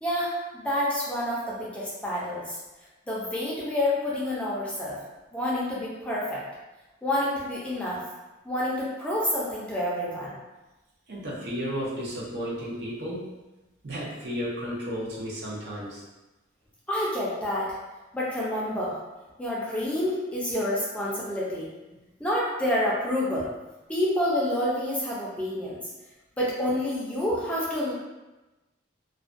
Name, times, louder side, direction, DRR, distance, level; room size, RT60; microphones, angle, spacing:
voice 1, 0.0-2.6 3.1-5.0 5.3-6.4 7.0-8.0 8.4-10.4 16.9-17.7 18.1-19.0 19.4-21.7 22.2-23.5 23.9-25.8 26.4-27.9, left 1 dB, 5° left, -7 dB, 0.4 m, -28 dB
voice 2, 11.1-13.3 13.8-16.0, equal, 65° right, -6 dB, 0.6 m, -33 dB
2.4 x 2.1 x 2.4 m, 1.1 s
head